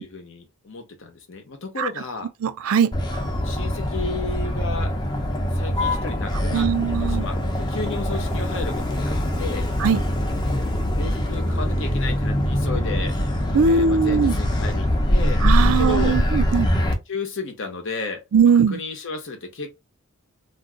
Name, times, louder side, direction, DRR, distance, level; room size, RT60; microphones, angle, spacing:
voice 1, 0.0-2.3 3.4-4.9 5.5-6.7 7.0-9.7 10.9-13.1 13.6-16.2 17.1-18.2 18.7-19.8, left 3 dB, 60° left, 0.8 m, -33 dB
voice 2, 2.4-2.9 6.5-7.3 9.8-10.0 13.5-14.3 15.4-16.7 18.3-18.8, right 6 dB, 70° right, 0.4 m, -20 dB
Motor vehicle (road), 2.9-16.9, equal, 20° left, 0.6 m, -23 dB
2.6 x 2.2 x 3.7 m
head